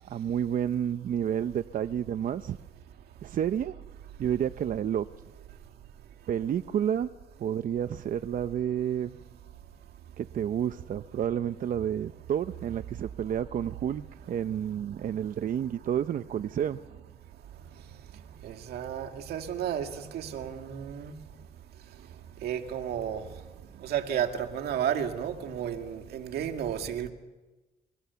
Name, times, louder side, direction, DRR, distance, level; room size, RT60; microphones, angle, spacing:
voice 1, 0.1-2.6 3.2-3.7 4.2-5.1 6.3-7.1 7.4-9.1 10.2-16.8, right 9 dB, 55° right, 0.7 m, -30 dB
voice 2, 18.4-21.2 22.4-23.2 23.8-27.1, right 9 dB, 85° right, 2.1 m, -32 dB
29.0 x 23.0 x 7.0 m
cardioid pair, 100°, 16 cm